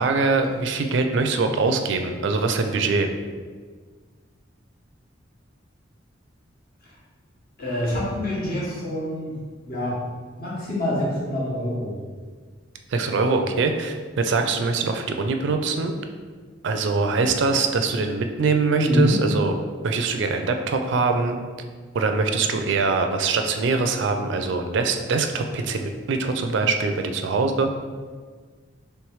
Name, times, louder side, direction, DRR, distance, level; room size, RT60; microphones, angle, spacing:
voice 1, 0.0-3.1 12.9-15.9 16.6-19.5 19.8-21.4 21.9-27.7, right 4 dB, 65° right, 6 dB, 0.4 m, -23 dB
voice 2, 7.6-9.4 9.6-10.0 10.4-12.0 18.7-19.2, left 1 dB, 50° left, -6 dB, 1.3 m, -26 dB
3.2 x 3.1 x 4.6 m, 1.5 s
head